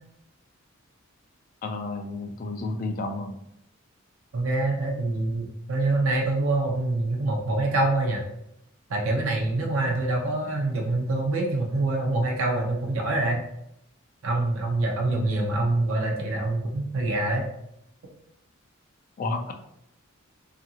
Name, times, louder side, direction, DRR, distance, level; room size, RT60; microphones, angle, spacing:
voice 1, 1.6-3.4 15.1-15.6 19.2-19.5, left 2 dB, 40° left, 5 dB, 0.3 m, -31 dB
voice 2, 4.3-8.3 8.9-13.4 14.2-17.5, right 2 dB, 70° right, 0 dB, 0.5 m, -25 dB
2.8 x 2.4 x 2.7 m, 0.78 s
head